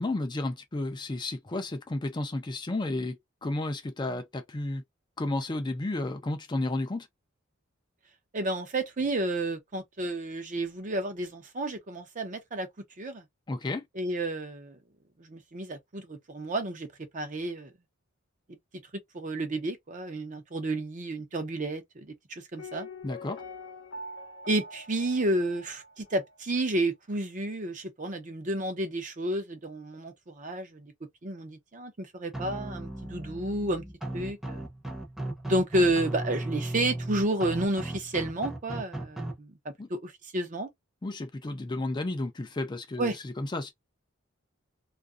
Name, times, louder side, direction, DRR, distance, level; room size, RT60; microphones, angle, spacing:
voice 1, 0.0-4.8 5.2-7.1 13.5-13.9 23.0-23.4 39.8-39.9 41.0-43.7, left 2 dB, 20° left, 0.4 m, -32 dB
voice 2, 8.3-12.7 13.0-13.2 14.0-14.8 15.2-16.9 17.1-17.7 19.1-22.9 24.5-30.9 31.2-33.8 34.1-34.6 35.5-39.5 39.9-40.7 43.0-43.2, right 1 dB, 40° right, 0.6 m, -31 dB
Piano, 22.6-26.4 26.6-26.7, left 2 dB, 60° left, 0.6 m, -44 dB
sound 1, 32.3-39.3, right 1 dB, ahead, 0.7 m, -36 dB
2.6 x 2.4 x 2.4 m
head